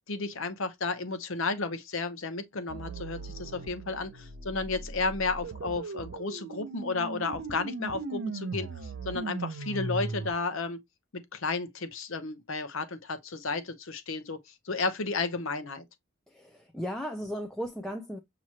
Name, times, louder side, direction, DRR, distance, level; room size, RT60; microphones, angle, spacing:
voice 1, 0.1-10.8 11.1-15.8, left 3 dB, 65° left, 0.7 m, -33 dB
sound 1, 2.7-10.3, right 3 dB, 55° right, 0.6 m, -38 dB
voice 2, 16.3-18.2, equal, ahead, 0.4 m, -36 dB
6.0 x 2.9 x 2.8 m
head